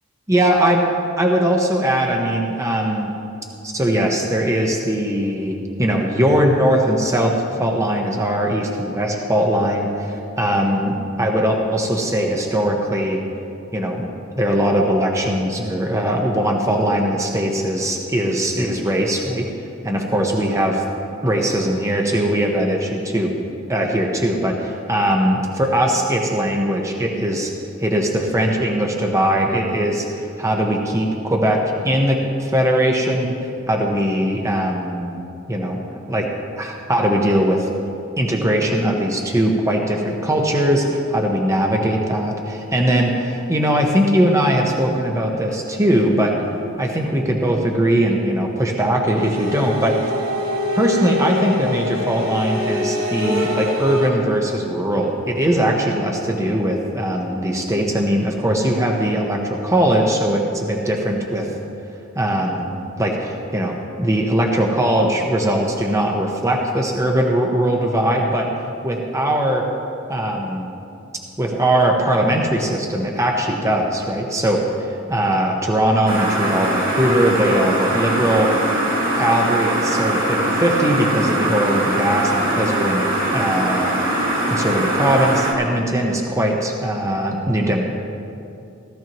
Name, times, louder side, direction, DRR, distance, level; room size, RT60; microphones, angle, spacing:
voice 1, 0.3-0.8 1.2-3.1 3.6-13.2 13.7-14.1 14.4-19.5 19.8-20.8 21.2-23.3 23.7-27.5 27.8-35.2 35.5-36.3 36.6-37.7 38.2-46.4 46.8-50.0 50.7-61.5 62.1-68.5 68.8-69.7 70.1-70.7 71.4-78.5 79.1-83.0 83.3-84.0 84.5-87.8, right 1 dB, 15° right, 1 dB, 0.9 m, -20 dB
sound 1, 49.2-54.1, left 2 dB, 80° right, 3.0 m, -24 dB
sound 2, 76.1-85.5, right 1 dB, 45° right, 2.3 m, -21 dB
17.0 x 13.5 x 3.0 m, 2.6 s
head